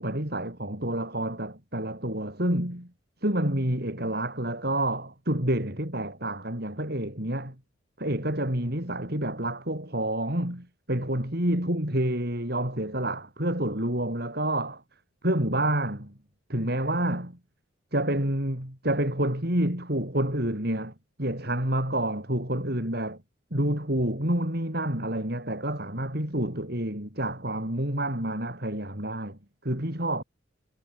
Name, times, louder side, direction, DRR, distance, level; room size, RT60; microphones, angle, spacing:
voice 1, 0.0-2.9 3.2-7.5 8.0-14.8 15.2-16.1 16.5-17.4 17.9-20.9 21.2-23.2 23.5-30.2, right 1 dB, 50° right, 6.1 m, -28 dB
head